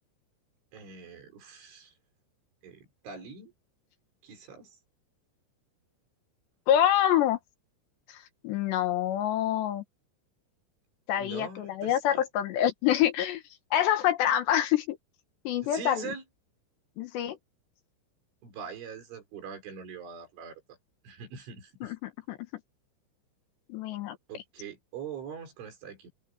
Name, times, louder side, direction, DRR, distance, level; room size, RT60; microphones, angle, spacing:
voice 1, 0.7-1.9 2.6-3.5 4.2-4.8 11.1-12.2 15.6-16.2 18.4-20.8 21.0-21.9 24.3-26.1, right 6 dB, 75° right, 7.5 m, -43 dB
voice 2, 6.7-7.4 8.1-9.8 11.1-13.4 13.7-15.0 15.4-16.0 17.0-17.4 21.8-22.4 23.7-24.2, left 11 dB, 70° left, 3.3 m, -26 dB
open air
omnidirectional pair, 5.5 m